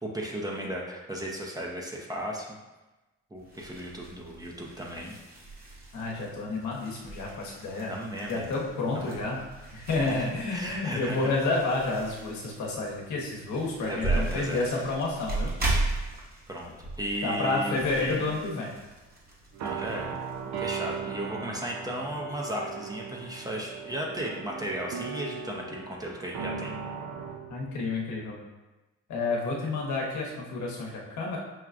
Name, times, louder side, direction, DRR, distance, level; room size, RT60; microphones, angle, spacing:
voice 1, 0.0-2.5 3.3-5.1 7.9-8.6 8.9-9.2 10.1-11.3 13.9-14.6 16.5-18.3 19.6-20.2 20.6-26.7, equal, 10° right, -2 dB, 0.6 m, -35 dB
sound 1, 3.4-21.0, right 2 dB, 30° right, 1.1 m, -37 dB
voice 2, 5.9-7.9 8.3-9.4 9.7-15.5 17.2-18.7 27.5-28.4 29.1-31.4, left 3 dB, 70° left, -2 dB, 1.0 m, -30 dB
sound 2, 19.5-28.0, right 6 dB, 65° right, 0.5 m, -38 dB
6.0 x 2.3 x 2.5 m, 1.1 s
cardioid pair, 90°, 30 cm